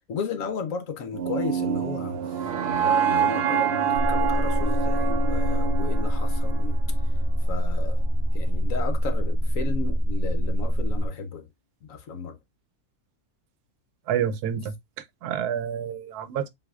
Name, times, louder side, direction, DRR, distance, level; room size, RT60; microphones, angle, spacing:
voice 1, 0.1-6.8 7.5-8.1 8.3-11.5 11.8-12.4, left 4 dB, 65° left, 1.0 m, -34 dB
sound 1, 1.1-7.2, right 7 dB, 60° right, 0.7 m, -27 dB
sound 2, 3.9-11.1, equal, 30° right, 0.9 m, -24 dB
voice 2, 14.1-14.7 15.2-16.5, right 8 dB, 85° right, 1.2 m, -28 dB
7.7 x 2.7 x 2.3 m
omnidirectional pair, 1.6 m